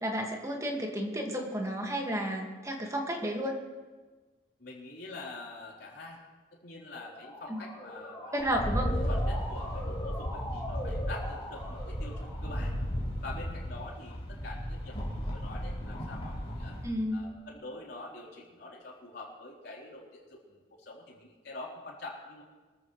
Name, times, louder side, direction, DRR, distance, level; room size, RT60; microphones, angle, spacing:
voice 1, 0.0-3.6 7.5-7.6 8.3-8.9 16.8-17.3, equal, 15° right, 1 dB, 1.9 m, -32 dB
voice 2, 4.6-6.2 6.6-8.5 9.1-12.7 13.2-16.8 17.1-22.4, left 2 dB, 65° left, -4 dB, 3.9 m, -45 dB
Motor vehicle (road) / Siren, 6.9-12.8, left 1 dB, 15° left, 4.2 m, -42 dB
Rattle, 8.4-16.9, equal, 35° left, 4.3 m, -34 dB
24.0 x 14.0 x 3.2 m, 1.3 s
head